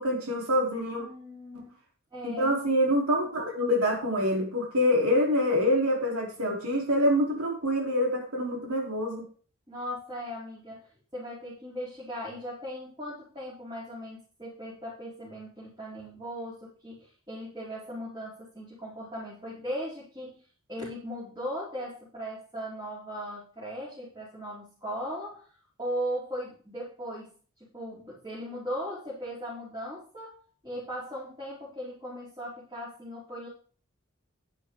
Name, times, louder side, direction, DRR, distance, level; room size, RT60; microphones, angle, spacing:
voice 1, 0.0-1.0 2.2-9.2, left 1 dB, 85° right, -1 dB, 4.1 m, -26 dB
voice 2, 0.9-1.7 2.1-2.5 9.7-20.4 20.7-25.4 25.8-27.3 27.6-33.5, equal, 20° right, -8 dB, 4.3 m, -38 dB
11.0 x 10.5 x 3.9 m, 0.41 s
head